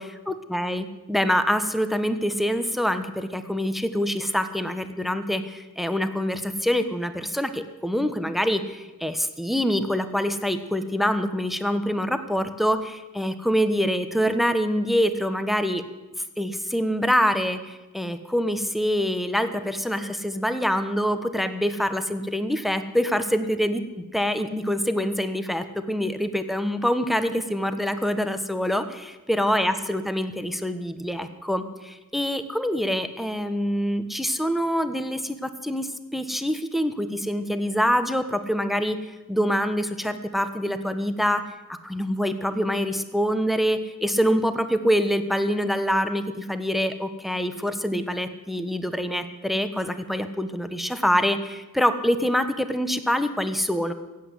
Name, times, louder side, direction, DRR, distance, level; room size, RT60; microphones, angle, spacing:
voice 1, 0.3-15.8 16.4-39.0 39.3-41.4 41.7-53.9, equal, ahead, 10 dB, 1.2 m, -25 dB
16.0 x 8.4 x 9.5 m, 1.1 s
wide cardioid pair, 45°, 32 cm